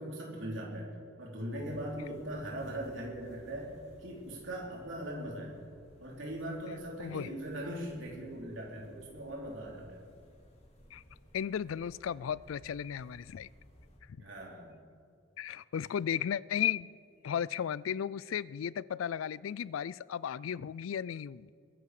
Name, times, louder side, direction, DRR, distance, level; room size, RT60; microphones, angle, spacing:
voice 1, 0.0-3.7 4.0-5.5 6.0-10.0 14.2-14.7, right 1 dB, 70° right, -2 dB, 3.3 m, -40 dB
sound 1, 1.5-14.0, equal, 35° left, 3.4 m, -59 dB
voice 2, 11.3-13.5 15.4-16.9 17.2-21.5, left 8 dB, 90° left, 21 dB, 0.4 m, -35 dB
21.5 x 11.0 x 4.9 m, 2.3 s
head